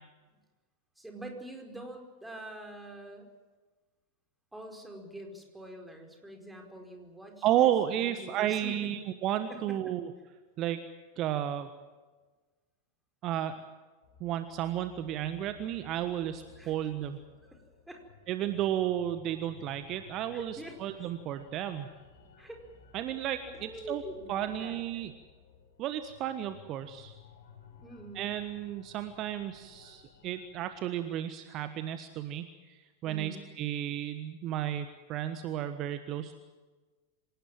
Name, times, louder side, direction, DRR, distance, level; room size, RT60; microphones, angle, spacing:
voice 1, 0.9-3.3 4.5-7.7 8.0-9.0 9.5-10.0 16.6-16.8 17.5-18.0 20.3-20.8 22.4-22.7 23.1-24.3 24.6-24.8 27.8-28.4 33.0-33.5, right 1 dB, 5° right, 3 dB, 5.0 m, -45 dB
voice 2, 7.4-10.1 10.6-10.8 11.2-11.7 13.2-13.6 14.2-17.2 18.3-21.9 22.9-24.0 24.3-25.1 25.8-27.1 28.1-36.4, right 11 dB, 35° right, 10 dB, 1.4 m, -32 dB
sound 1, 14.0-31.0, left 7 dB, 55° left, 7.5 m, -56 dB
26.5 x 18.5 x 7.5 m, 1.3 s
figure-of-eight pair, 90°, 0 cm